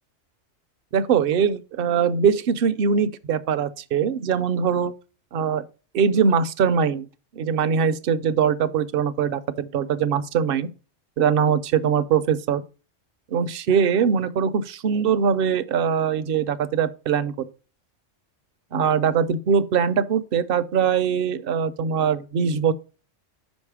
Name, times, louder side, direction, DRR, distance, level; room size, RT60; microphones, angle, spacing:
voice 1, 0.9-4.9 5.3-5.6 5.9-7.1 7.4-10.7 11.2-12.6 13.3-17.3 18.7-22.7, right 7 dB, 60° right, 0.7 m, -22 dB
6.2 x 5.2 x 4.8 m
omnidirectional pair, 1.2 m